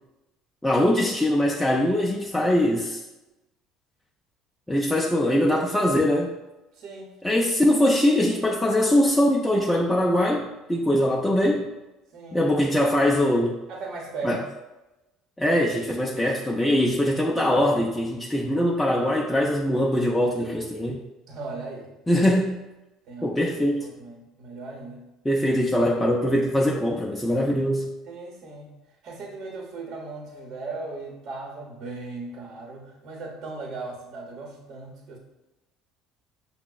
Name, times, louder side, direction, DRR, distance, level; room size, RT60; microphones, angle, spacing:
voice 1, 0.6-3.0 4.7-6.3 7.2-11.7 12.3-13.6 14.2-14.4 15.4-21.0 22.1-22.6 23.2-23.9 25.2-27.9, left 1 dB, 10° left, -3 dB, 0.4 m, -22 dB
voice 2, 6.7-7.1 12.1-12.5 13.7-14.4 21.3-22.2 23.0-23.4 23.8-25.1 28.1-28.8 29.0-35.2, right 3 dB, 60° right, 0 dB, 0.8 m, -37 dB
5.9 x 2.0 x 2.2 m, 1.0 s
supercardioid pair, 75°, 0 cm